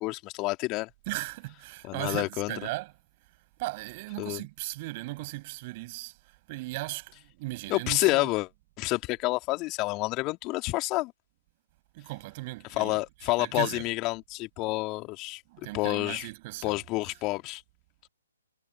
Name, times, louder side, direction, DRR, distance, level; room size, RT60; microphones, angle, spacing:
voice 1, 0.0-0.9 1.8-2.5 4.2-4.4 7.7-8.5 8.8-11.1 12.8-15.4 15.7-16.3 16.6-17.6, left 22 dB, 25° left, 2.8 m, -29 dB
voice 2, 1.1-2.9 3.6-8.3 11.9-13.9 15.5-16.8, right 22 dB, 30° right, 7.4 m, -37 dB
figure-of-eight pair, 130°, 0 cm